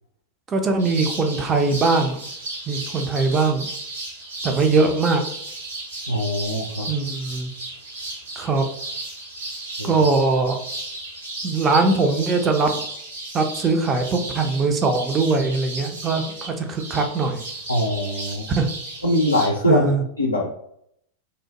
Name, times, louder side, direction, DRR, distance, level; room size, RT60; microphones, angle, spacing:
voice 1, 0.5-2.2 2.7-3.7 4.4-5.2 6.9-7.5 8.4-8.7 9.8-10.6 11.4-12.7 13.3-17.4 18.6-18.7 19.7-20.0, right 3 dB, 25° right, 4 dB, 0.4 m, -21 dB
sound 1, 0.8-19.5, right 2 dB, 70° right, 1.1 m, -34 dB
voice 2, 6.1-6.9 9.8-10.0 17.7-18.5 19.0-19.9 20.2-20.5, left 1 dB, 80° left, -1 dB, 0.4 m, -22 dB
2.8 x 2.0 x 2.8 m, 0.71 s
figure-of-eight pair, 90°, 0 cm